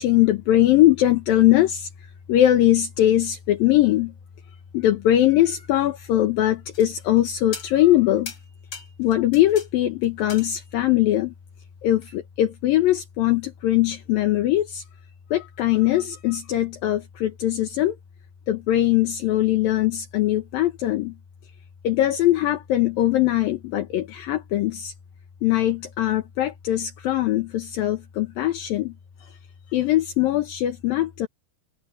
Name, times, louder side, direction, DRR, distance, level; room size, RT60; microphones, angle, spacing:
voice 1, 0.0-1.9 2.3-4.1 4.7-8.3 9.0-11.3 11.8-14.9 15.3-18.0 18.5-21.2 21.8-24.9 25.4-28.9 29.2-29.4 29.7-31.3, left 13 dB, 70° left, 2.8 m, -21 dB
sound 1, 6.7-7.2 7.5-8.0 8.3-9.7 10.0-10.9 12.0-12.1, left 5 dB, 35° left, 3.7 m, -39 dB
omnidirectional pair, 4.6 m